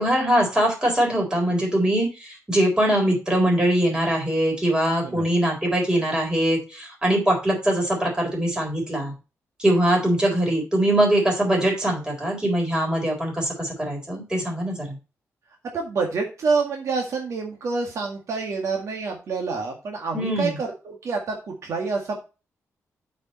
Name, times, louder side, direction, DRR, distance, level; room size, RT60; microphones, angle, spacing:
voice 1, 0.0-9.1 9.6-15.0 20.1-20.6, right 1 dB, 15° right, -1 dB, 4.1 m, -22 dB
voice 2, 15.7-22.2, right 4 dB, 70° right, 1 dB, 1.9 m, -27 dB
8.9 x 5.3 x 4.2 m, 0.30 s
wide cardioid pair, 140°, 5 cm